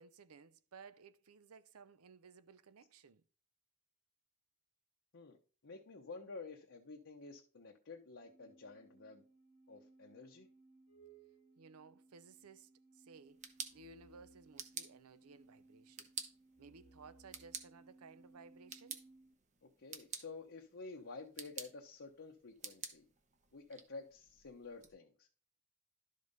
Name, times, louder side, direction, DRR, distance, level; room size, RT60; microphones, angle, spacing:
voice 1, 0.0-3.2 11.6-16.1 16.6-19.0, right 5 dB, 75° right, 0.6 m, -58 dB
voice 2, 5.6-9.2 9.7-10.5 19.8-23.0 23.5-25.3, left 3 dB, 55° left, 0.8 m, -51 dB
sound 1, 8.1-19.3, right 2 dB, 85° left, 1.5 m, -64 dB
sound 2, 13.1-24.9, right 6 dB, 35° right, 0.9 m, -51 dB
11.5 x 5.2 x 4.0 m
head